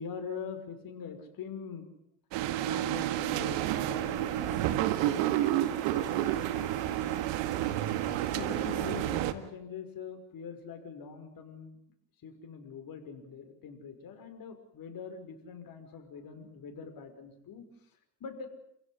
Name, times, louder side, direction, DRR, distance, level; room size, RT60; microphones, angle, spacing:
voice 1, 0.0-1.9 2.6-7.6 8.0-11.8 12.2-17.7 18.2-18.5, left 6 dB, 50° left, 7 dB, 5.9 m, -44 dB
sound 1, 2.3-9.3, right 13 dB, 70° right, 2.1 m, -30 dB
sound 2, 3.2-9.2, equal, 15° left, 5.7 m, -48 dB
28.0 x 16.5 x 9.9 m, 0.74 s
supercardioid pair, 90°, 46 cm